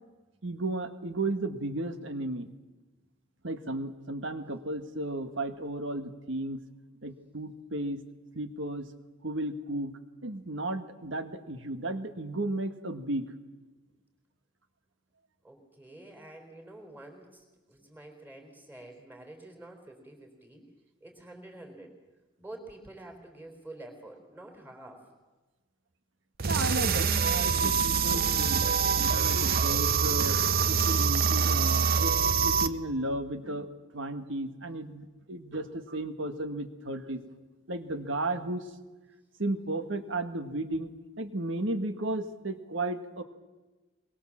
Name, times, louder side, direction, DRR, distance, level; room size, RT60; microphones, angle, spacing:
voice 1, 0.4-2.5 3.4-6.6 7.0-8.0 8.3-8.9 9.2-13.3 26.5-28.6 29.0-30.4 30.7-37.2 37.7-38.7 39.4-40.9 41.2-43.2, right 2 dB, 70° right, 9 dB, 1.6 m, -34 dB
voice 2, 15.4-20.6 21.0-21.9 22.4-25.1, right 1 dB, 10° right, 3 dB, 4.0 m, -48 dB
sound 1, 26.4-32.7, right 6 dB, 45° right, 0.8 m, -25 dB
22.5 x 22.5 x 7.4 m, 1.2 s
head